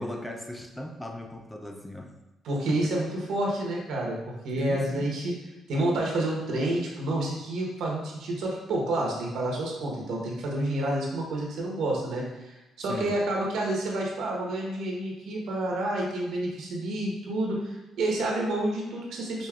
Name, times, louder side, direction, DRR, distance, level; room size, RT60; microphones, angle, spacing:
voice 1, 0.0-2.1 2.7-2.9 4.6-5.1 12.8-13.2, left 1 dB, 10° left, 3 dB, 0.4 m, -37 dB
voice 2, 2.4-5.3 5.7-19.5, right 1 dB, 80° right, -1 dB, 1.0 m, -29 dB
5.1 x 2.7 x 2.3 m, 1.0 s
cardioid pair, 90°, 0 cm